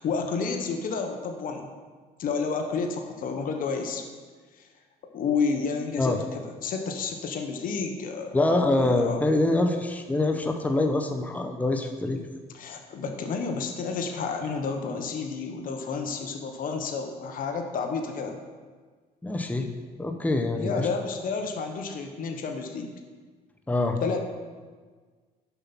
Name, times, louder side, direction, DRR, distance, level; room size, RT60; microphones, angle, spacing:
voice 1, 0.0-1.7 2.2-4.0 4.6-4.7 5.1-8.4 8.7-9.3 12.5-18.4 20.6-22.9 24.0-24.3, left 5 dB, 55° left, 4 dB, 1.0 m, -30 dB
voice 2, 8.3-12.2 19.2-19.7 20.0-20.8 23.7-24.0, left 2 dB, 10° left, 5 dB, 0.7 m, -25 dB
6.9 x 5.6 x 5.9 m, 1.5 s
cardioid pair, 110°, 17 cm